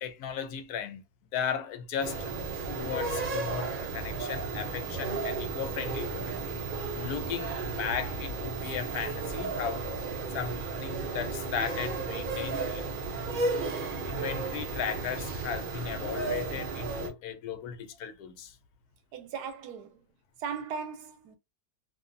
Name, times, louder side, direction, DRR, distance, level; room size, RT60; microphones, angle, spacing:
voice 1, 0.0-1.0 1.3-2.3 2.7-6.4 6.9-9.9 10.3-12.9 14.0-18.6, left 7 dB, 75° left, 1.0 m, -36 dB
sound 1, 2.0-17.1, right 3 dB, 55° right, 0.5 m, -34 dB
voice 2, 19.1-20.1 20.4-21.4, right 6 dB, 85° right, 1.2 m, -38 dB
2.5 x 2.5 x 2.5 m
omnidirectional pair, 1.7 m